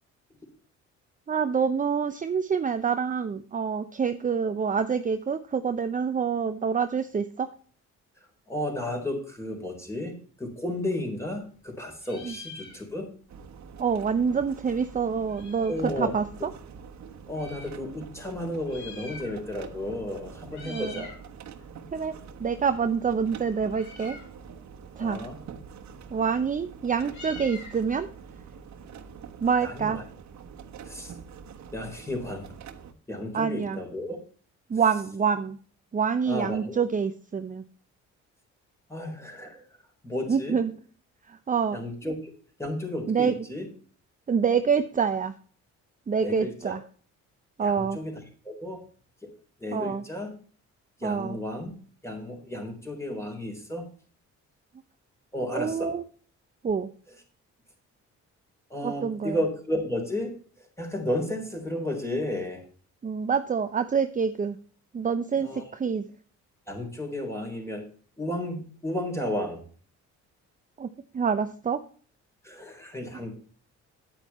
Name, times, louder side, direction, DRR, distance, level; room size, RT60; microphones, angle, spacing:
voice 1, 1.3-7.5 12.2-12.3 13.8-16.5 20.7-21.1 21.9-24.2 25.0-25.2 26.1-28.1 29.4-30.0 33.3-33.8 34.7-35.6 35.9-37.6 40.3-40.7 41.3-41.8 42.0-42.1 43.1-43.4 44.3-45.3 46.1-46.8 47.6-48.0 49.7-50.0 51.0-51.4 55.5-56.0 56.6-56.9 58.8-59.4 63.0-64.6 64.9-66.1 70.8-71.8, right 6 dB, 25° right, 9 dB, 0.7 m, -27 dB
voice 2, 8.5-13.1 15.7-16.1 17.3-21.2 25.0-25.4 29.6-30.0 30.9-31.1 31.7-32.5 33.1-34.2 36.3-36.8 38.9-39.6 40.0-40.6 41.7-42.3 42.6-43.7 46.2-46.7 47.6-48.2 48.4-48.8 49.2-49.3 49.6-50.3 51.0-51.7 52.0-53.9 55.3-55.9 58.7-60.4 60.8-62.6 65.4-65.6 66.7-67.8 68.2-69.6 72.4-73.3, left 1 dB, 10° left, 2 dB, 3.9 m, -33 dB
Meow, 10.7-11.7 11.9-13.2 13.5-13.6 13.8-15.9 16.6-17.8 18.5-19.7 20.0-20.2 20.5-21.2 21.6-29.4, left 3 dB, 70° left, 4.0 m, -47 dB
sound 1, 13.3-32.9, right 6 dB, 65° right, 1.3 m, -45 dB
9.2 x 8.9 x 4.2 m, 0.44 s
cardioid pair, 90°, 30 cm